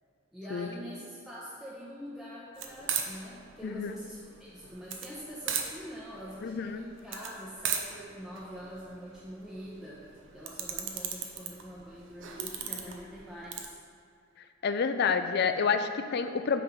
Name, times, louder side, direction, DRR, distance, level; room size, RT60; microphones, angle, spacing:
voice 1, 0.3-13.8, equal, ahead, -9 dB, 0.8 m, -44 dB
sound 1, 2.6-13.7, right 7 dB, 65° right, 0.7 m, -38 dB
voice 2, 3.6-3.9 6.4-6.8 14.6-16.6, left 5 dB, 50° left, 8 dB, 0.4 m, -28 dB
8.4 x 3.7 x 5.4 m, 2.3 s
head